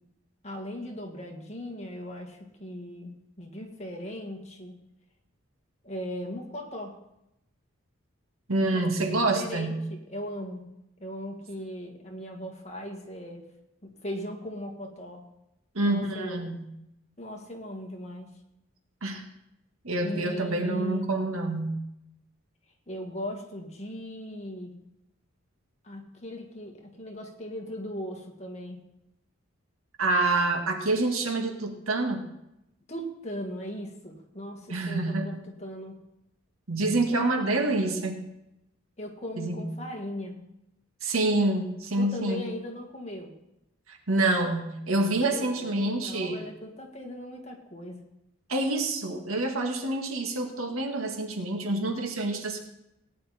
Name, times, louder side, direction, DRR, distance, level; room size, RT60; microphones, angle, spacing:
voice 1, 0.4-3.1 3.4-4.8 5.8-7.0 8.7-10.7 11.0-13.5 13.8-15.2 15.8-16.5 17.2-18.3 20.0-21.2 22.9-24.7 25.8-28.8 32.9-36.0 37.1-37.2 39.0-40.4 42.0-43.3 45.2-48.0, equal, 30° left, 1 dB, 2.0 m, -38 dB
voice 2, 8.5-9.8 15.7-16.6 19.0-19.2 19.8-21.8 30.0-32.3 34.7-35.3 36.7-38.2 39.4-39.7 41.0-42.4 43.9-46.4 48.5-52.6, right 2 dB, 85° right, 4 dB, 1.9 m, -27 dB
17.5 x 9.9 x 4.3 m, 0.85 s
head